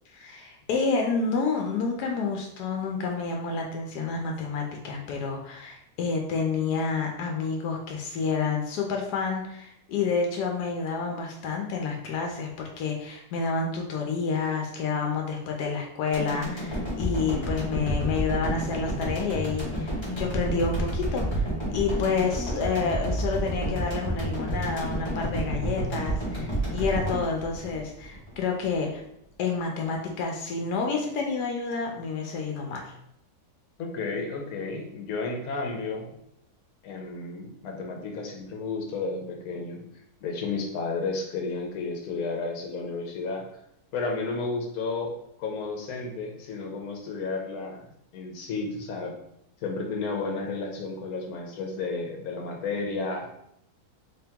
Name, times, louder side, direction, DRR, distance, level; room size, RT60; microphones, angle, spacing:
voice 1, 0.1-29.0 29.4-32.9, left 4 dB, 85° left, 1 dB, 1.2 m, -29 dB
sound 1, 16.1-28.4 28.7-28.8, right 1 dB, 20° left, 1.1 m, -30 dB
voice 2, 33.8-36.1 36.8-39.8 40.2-43.4 43.9-47.9 48.1-49.1 49.6-53.3, left 3 dB, 70° left, 1 dB, 1.2 m, -32 dB
3.6 x 2.9 x 3.5 m, 0.75 s
omnidirectional pair, 1.7 m